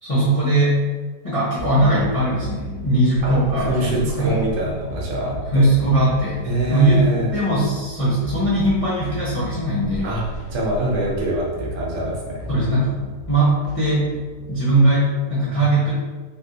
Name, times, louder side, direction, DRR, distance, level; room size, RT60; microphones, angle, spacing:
voice 1, 0.0-0.8 1.2-4.4 5.5-6.4 6.7-7.0 7.3-10.1 12.5-13.0 13.3-14.1 14.5-15.9, right 1 dB, 40° left, -9 dB, 0.4 m, -19 dB
sound 1, 1.6-14.9, right 1 dB, 65° left, 1.0 m, -35 dB
voice 2, 3.2-5.6 6.4-7.3 10.0-10.2 10.5-12.3 15.5-15.7, right 1 dB, 55° right, -4 dB, 1.0 m, -25 dB
3.5 x 2.3 x 2.7 m, 1.4 s
omnidirectional pair, 1.8 m